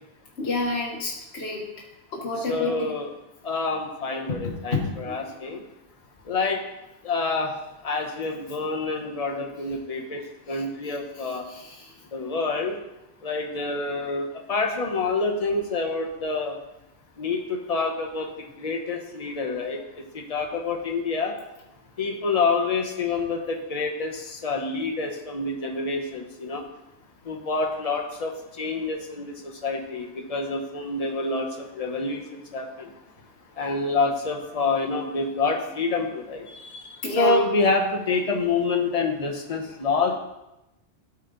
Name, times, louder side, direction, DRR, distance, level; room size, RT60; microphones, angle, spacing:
voice 1, 0.4-1.6 2.2-2.9 4.7-4.8 37.0-37.4, left 3 dB, 60° left, -3 dB, 1.4 m, -28 dB
voice 2, 2.4-3.1 3.4-5.6 6.3-6.6 7.0-7.5 7.8-11.5 12.1-12.7 13.2-16.6 17.2-18.3 18.6-19.8 20.1-21.3 22.0-26.6 27.3-29.3 29.6-32.9 33.6-36.8 37.1-40.2, left 3 dB, 35° left, 3 dB, 1.0 m, -27 dB
13.0 x 4.4 x 3.9 m, 0.93 s
omnidirectional pair, 1.2 m